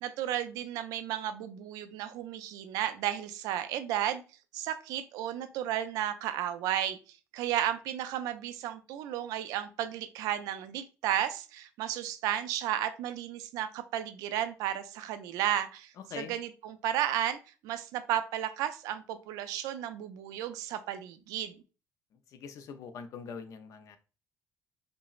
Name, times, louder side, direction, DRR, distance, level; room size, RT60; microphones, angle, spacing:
voice 1, 0.0-4.2 4.5-7.0 7.3-15.9 16.2-21.6, right 11 dB, 90° right, 10 dB, 0.4 m, -33 dB
voice 2, 22.3-24.0, left 6 dB, 65° left, 9 dB, 0.5 m, -43 dB
5.1 x 2.0 x 2.4 m, 0.34 s
cardioid pair, 95°, 6 cm